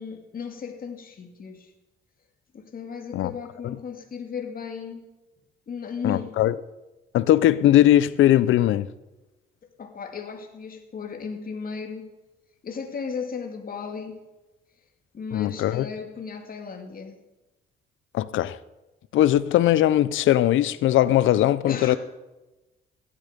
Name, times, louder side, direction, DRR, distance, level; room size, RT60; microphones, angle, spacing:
voice 1, 0.0-1.7 2.5-5.1 5.7-6.4 9.8-12.1 12.6-14.2 15.1-17.2 21.7-22.0, left 6 dB, 45° left, 2.5 m, -35 dB
voice 2, 6.0-6.6 7.1-8.9 15.3-15.9 18.1-18.6 19.1-22.0, left 13 dB, 80° left, 0.7 m, -19 dB
17.0 x 12.5 x 5.2 m
cardioid pair, 90°, 20 cm